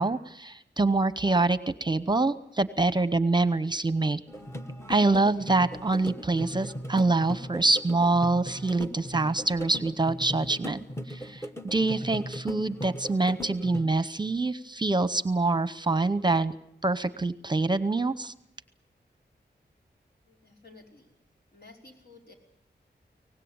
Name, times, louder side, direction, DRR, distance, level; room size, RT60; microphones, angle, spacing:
voice 1, 0.0-4.2 4.9-16.5 16.8-18.3, right 3 dB, 25° right, 14 dB, 0.9 m, -25 dB
sound 1, 4.3-13.8, equal, 15° left, 1.2 m, -39 dB
voice 2, 20.3-21.2 21.5-22.3, left 3 dB, 65° left, 1 dB, 5.2 m, -53 dB
24.0 x 18.5 x 8.8 m, 0.76 s
wide cardioid pair, 95°, 18 cm